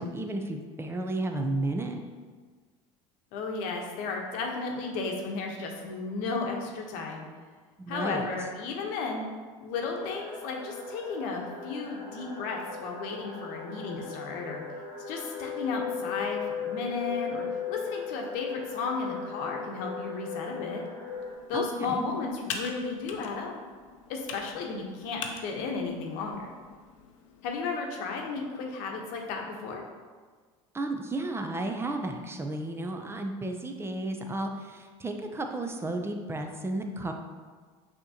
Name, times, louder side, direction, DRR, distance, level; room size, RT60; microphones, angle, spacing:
voice 1, 0.0-2.0 7.8-8.3 21.5-22.0 30.7-37.1, right 2 dB, 15° right, 4 dB, 0.5 m, -33 dB
voice 2, 3.3-7.3 7.9-9.2 9.6-14.6 15.1-20.8 21.5-23.5 24.1-26.5 27.4-29.8, left 4 dB, 65° left, 1 dB, 0.9 m, -34 dB
sound 1, 10.0-21.3, left 5 dB, 10° left, 1.0 m, -37 dB
Computer keyboard, 21.1-27.8, left 5 dB, 85° left, 0.5 m, -44 dB
6.1 x 3.0 x 2.7 m, 1.5 s
supercardioid pair, 90°, 16 cm